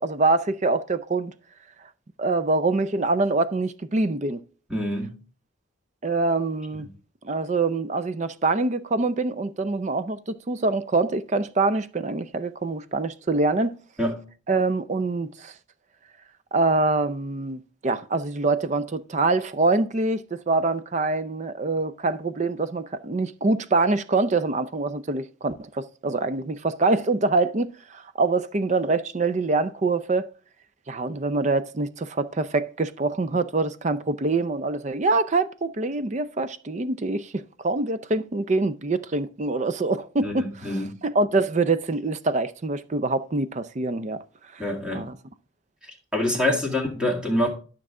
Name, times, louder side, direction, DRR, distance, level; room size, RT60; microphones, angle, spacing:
voice 1, 0.0-1.3 2.2-4.4 6.0-6.9 7.2-13.7 14.5-15.5 16.5-30.3 30.9-44.2 44.5-44.7 44.9-45.2, right 3 dB, 35° right, 0.5 m, -25 dB
voice 2, 4.7-5.2 14.0-14.2 40.2-40.9 44.6-45.1 46.1-47.5, left 1 dB, 5° right, 2.1 m, -25 dB
12.0 x 6.0 x 3.7 m
head